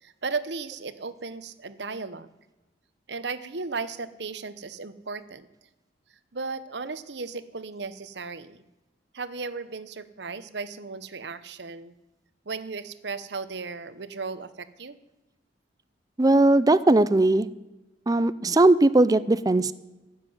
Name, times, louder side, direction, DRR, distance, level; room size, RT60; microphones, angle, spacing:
voice 1, 0.0-2.3 3.1-5.5 6.3-8.6 9.1-11.9 12.4-15.0, right 4 dB, 65° right, 13 dB, 0.9 m, -35 dB
voice 2, 16.2-17.5 18.1-19.7, right 2 dB, 20° right, 16 dB, 0.5 m, -19 dB
15.0 x 7.5 x 9.5 m, 1.1 s
head